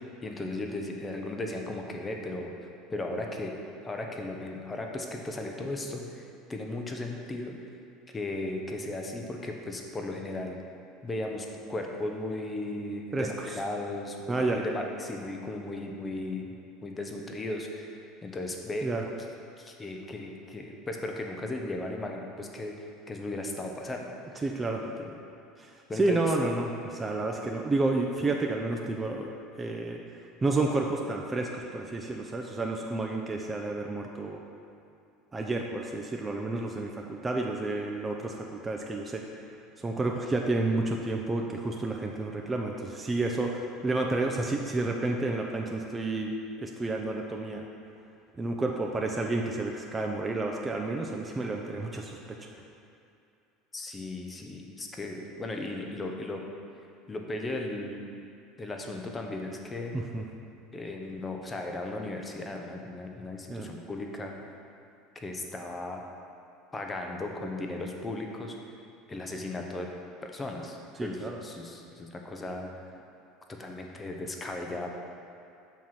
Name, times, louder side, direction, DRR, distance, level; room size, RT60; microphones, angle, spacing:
voice 1, 0.2-2.5 2.9-3.5 3.8-6.2 6.5-7.6 8.1-10.6 11.0-16.5 16.8-18.9 19.6-24.5 24.8-25.1 25.9-26.2 53.7-56.4 57.1-58.0 58.6-60.0 60.7-64.3 65.2-66.0 66.7-68.6 69.1-69.9 70.2-72.7 73.5-75.0, left 2 dB, 20° left, 2 dB, 0.7 m, -36 dB
voice 2, 13.1-13.5 14.3-14.6 18.8-19.0 24.4-24.8 25.6-29.3 29.6-30.0 30.4-34.4 35.3-39.2 39.8-46.3 46.6-47.6 48.4-52.2 59.9-60.2 63.5-63.7 71.0-71.4, right 2 dB, 20° right, 1 dB, 0.5 m, -30 dB
7.2 x 3.0 x 5.6 m, 2.6 s
supercardioid pair, 105°, 0 cm